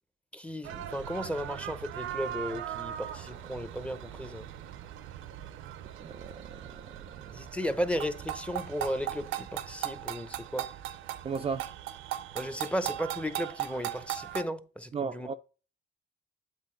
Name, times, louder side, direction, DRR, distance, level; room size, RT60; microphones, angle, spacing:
voice 1, 0.3-4.4 7.3-10.7 12.3-15.3, equal, 5° left, 0.7 m, -35 dB
sound 1, 0.6-14.4, right 12 dB, 85° right, 0.5 m, -39 dB
voice 2, 6.0-7.4 11.2-11.7 14.9-15.3, right 5 dB, 30° right, 0.4 m, -36 dB
8.1 x 3.8 x 3.8 m
cardioid pair, 90°, 20 cm